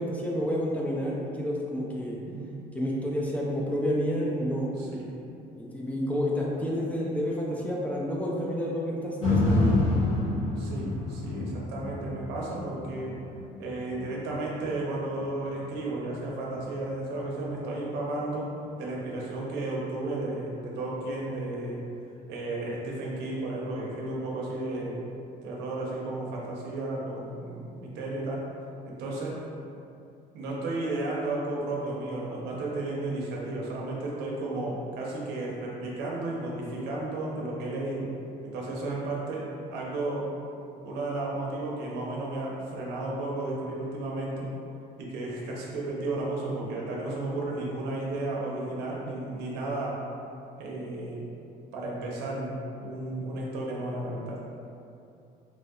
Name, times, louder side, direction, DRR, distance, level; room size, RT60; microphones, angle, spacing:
voice 1, 0.0-2.2 2.7-4.7 5.6-9.9, equal, 10° left, -4 dB, 0.4 m, -29 dB
voice 2, 2.2-2.5 4.8-5.0 10.6-13.1 13.6-18.5 18.8-21.8 22.3-25.0 25.4-28.4 28.9-29.4 30.3-38.1 38.4-40.3 40.8-44.5 45.0-50.0 50.6-51.2 51.7-52.5 52.8-54.4, right 2 dB, 90° right, -4 dB, 0.6 m, -33 dB
sound 1, 9.2-17.4 17.8-17.9, left 2 dB, 30° left, 1.3 m, -29 dB
3.1 x 2.6 x 2.3 m, 2.6 s
cardioid pair, 110°, 17 cm